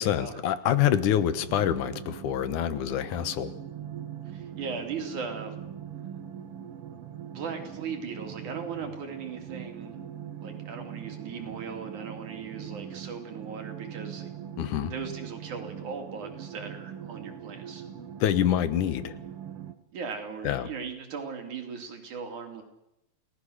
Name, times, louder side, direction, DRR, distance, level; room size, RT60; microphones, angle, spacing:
voice 1, 0.0-3.5 14.6-14.9 18.2-19.1 20.4-20.7, left 10 dB, 85° left, 13 dB, 2.7 m, -26 dB
sound 1, 0.9-19.7, right 9 dB, 55° right, 2.0 m, -41 dB
voice 2, 4.3-5.6 7.3-10.0 10.4-14.3 14.8-17.9 19.9-22.6, right 5 dB, 75° right, 4 dB, 4.4 m, -38 dB
28.5 x 18.5 x 6.6 m, 0.88 s
omnidirectional pair, 3.5 m